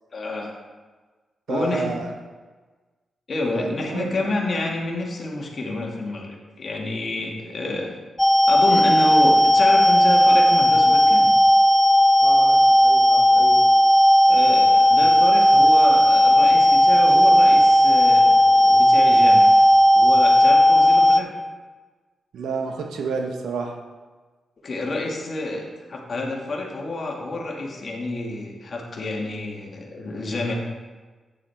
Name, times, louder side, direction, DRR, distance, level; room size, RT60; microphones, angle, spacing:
voice 1, 0.1-0.6 1.5-2.0 3.3-7.9 8.5-11.3 14.3-19.5 19.9-21.3 24.6-25.6 25.9-30.5, left 2 dB, 55° left, -1 dB, 2.2 m, -28 dB
voice 2, 1.5-2.1 3.5-4.2 12.2-13.6 22.3-23.7, right 4 dB, 75° right, 2 dB, 1.3 m, -30 dB
sound 1, 8.2-21.2, equal, 15° left, 0.5 m, -15 dB
9.7 x 7.5 x 3.6 m, 1.3 s
supercardioid pair, 40°, 0 cm